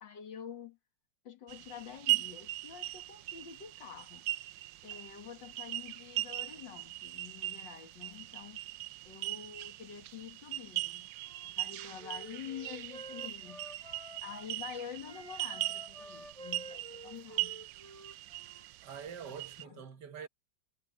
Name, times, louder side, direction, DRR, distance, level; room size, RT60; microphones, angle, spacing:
voice 1, 0.0-0.8 1.2-4.3 4.8-8.6 9.0-11.1 11.4-13.7 14.2-17.6 19.3-19.8, left 8 dB, 90° left, 2.4 m, -47 dB
sound 1, 1.5-19.6, right 18 dB, 90° right, 1.3 m, -39 dB
Wind instrument woodwind instrument, 11.2-14.5 15.0-18.7, right 1 dB, 20° right, 7.4 m, -51 dB
voice 2, 18.8-20.3, right 7 dB, 70° right, 1.9 m, -45 dB
omnidirectional pair, 1.9 m